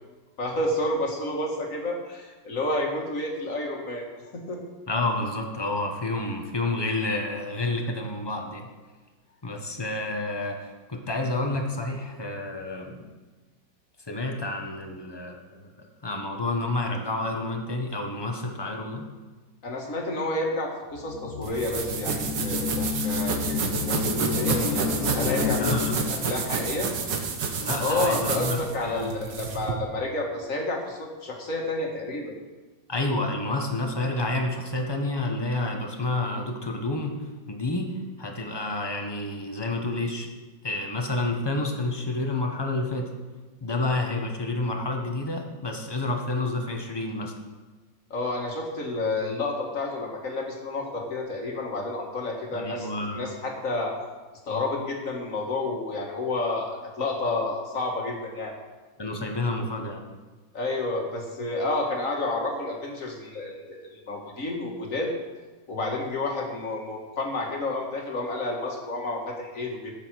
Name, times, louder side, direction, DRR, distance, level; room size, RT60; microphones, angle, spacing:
voice 1, 0.4-4.0 4.3-4.6 19.6-25.6 26.1-26.9 27.8-32.3 48.1-52.9 53.1-54.0 54.5-58.5 60.5-65.1 65.7-69.9, left 2 dB, 45° left, 0 dB, 2.2 m, -30 dB
voice 2, 4.9-8.7 9.4-13.1 14.1-15.7 16.0-19.0 25.5-26.0 27.6-29.1 32.9-37.2 37.5-40.3 40.6-43.1 43.6-47.3 52.5-53.2 59.0-60.0, left 2 dB, 15° left, 3 dB, 1.1 m, -29 dB
sound 1, 20.9-26.5, left 7 dB, 60° left, 1.1 m, -30 dB
sound 2, 21.4-29.7, right 5 dB, 70° right, 1.8 m, -29 dB
13.0 x 7.5 x 6.3 m, 1.3 s
omnidirectional pair, 2.0 m